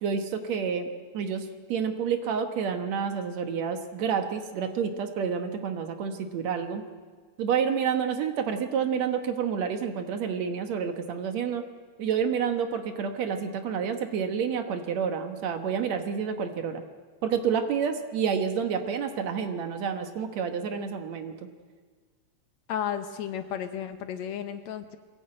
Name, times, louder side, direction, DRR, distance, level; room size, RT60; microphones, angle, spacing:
voice 1, 0.0-6.8 7.4-11.7 12.0-16.8 17.2-21.3, right 7 dB, 65° right, 7 dB, 2.4 m, -29 dB
voice 2, 22.7-25.0, left 9 dB, 70° left, 9 dB, 2.2 m, -33 dB
22.0 x 16.5 x 8.9 m, 1.5 s
omnidirectional pair, 3.5 m